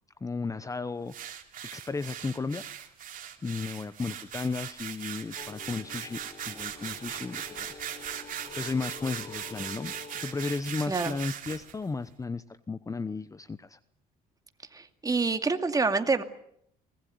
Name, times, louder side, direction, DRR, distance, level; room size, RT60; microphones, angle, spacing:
voice 1, 0.2-1.4 1.7-2.9 3.4-6.2 6.5-8.1 8.6-9.9 10.2-13.8, left 4 dB, 20° left, 14 dB, 1.0 m, -34 dB
sound 1, 1.1-11.7, right 9 dB, 55° right, 3.5 m, -39 dB
sound 2, 5.3-10.5, left 5 dB, 45° left, 4.5 m, -47 dB
voice 2, 14.7-16.2, right 4 dB, 20° right, 7 dB, 2.4 m, -27 dB
24.5 x 20.5 x 9.4 m, 0.71 s
cardioid pair, 110°, 17 cm